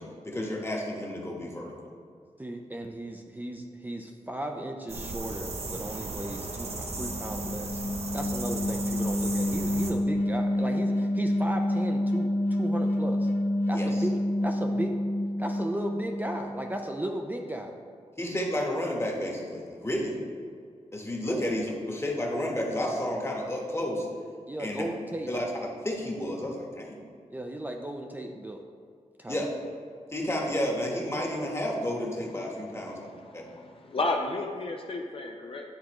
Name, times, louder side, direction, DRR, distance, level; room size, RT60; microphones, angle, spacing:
voice 1, 0.0-1.7 13.7-13.9 18.2-20.2 20.9-24.1 24.6-24.8 25.3-25.5 25.8-27.0 29.3-29.5 30.1-33.1 33.3-33.4, left 1 dB, 20° left, -1 dB, 1.2 m, -31 dB
voice 2, 2.4-7.8 8.1-13.3 13.7-15.0 15.4-17.7 21.3-21.4 24.5-25.3 27.3-28.6 29.2-29.4, right 1 dB, 15° right, 3 dB, 0.4 m, -35 dB
sound 1, 4.9-9.9, right 3 dB, 60° right, 0.8 m, -36 dB
sound 2, 6.7-16.8, left 1 dB, 65° left, 1.4 m, -28 dB
voice 3, 33.1-35.6, left 2 dB, 50° left, 2 dB, 0.5 m, -32 dB
9.5 x 3.7 x 3.0 m, 2.2 s
cardioid pair, 70°, 12 cm